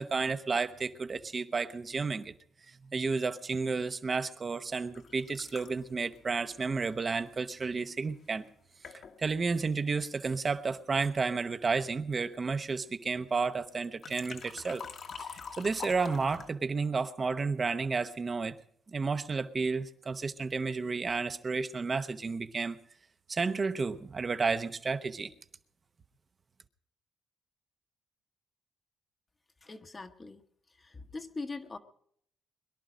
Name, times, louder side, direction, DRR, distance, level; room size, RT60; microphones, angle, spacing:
voice 1, 0.0-2.3 2.7-8.4 9.2-14.8 15.2-18.6 18.9-22.8 23.3-25.3, right 4 dB, 35° right, 12 dB, 0.9 m, -32 dB
sound 1, 5.0-7.8 8.4-8.5 8.8-9.4 13.8-16.5, left 6 dB, 60° left, 1.6 m, -46 dB
voice 2, 29.6-30.4 30.7-31.8, left 3 dB, 25° left, 5 dB, 1.1 m, -42 dB
22.0 x 11.5 x 5.1 m, 0.67 s
cardioid pair, 90°, 0 cm